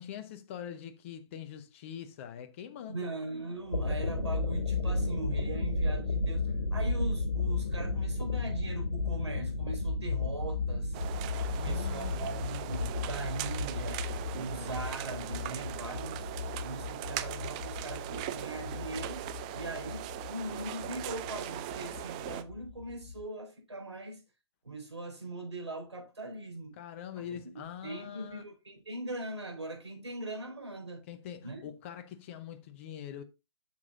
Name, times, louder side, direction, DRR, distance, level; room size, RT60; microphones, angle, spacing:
voice 1, 0.0-3.1 11.5-12.3 26.7-28.5 31.1-33.2, left 9 dB, 30° left, 0.7 m, -43 dB
voice 2, 2.9-6.4 6.7-11.3 11.6-16.3 16.6-19.3 19.5-24.2 24.6-26.8 27.1-27.2 27.5-31.0 31.4-31.7, right 2 dB, 75° right, 4.3 m, -40 dB
sound 1, 3.5-23.2, left 3 dB, 75° left, 2.0 m, -34 dB
sound 2, 10.9-22.4, right 14 dB, 15° right, 0.3 m, -40 dB
8.2 x 6.9 x 2.5 m
figure-of-eight pair, 135°, 14 cm